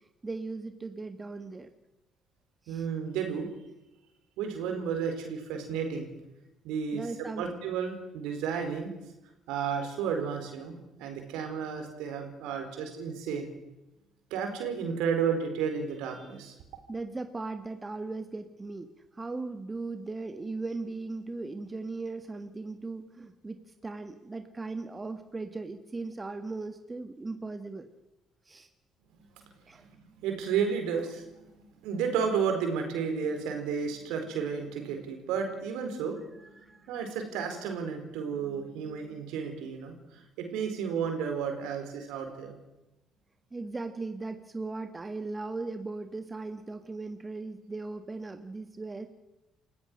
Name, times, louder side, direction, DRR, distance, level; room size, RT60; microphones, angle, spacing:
voice 1, 0.2-1.7 2.7-2.9 6.9-7.5 16.9-27.9 28.5-28.7 29.7-29.8 36.6-36.9 43.5-49.1, right 3 dB, 25° right, 8 dB, 1.6 m, -38 dB
voice 2, 2.7-3.5 4.4-6.1 6.6-8.9 9.5-13.5 14.3-16.5 29.9-30.0 30.2-36.2 36.9-42.5, right 6 dB, 70° right, 5 dB, 4.4 m, -32 dB
28.5 x 15.5 x 6.4 m, 0.98 s
hypercardioid pair, 50°, 0 cm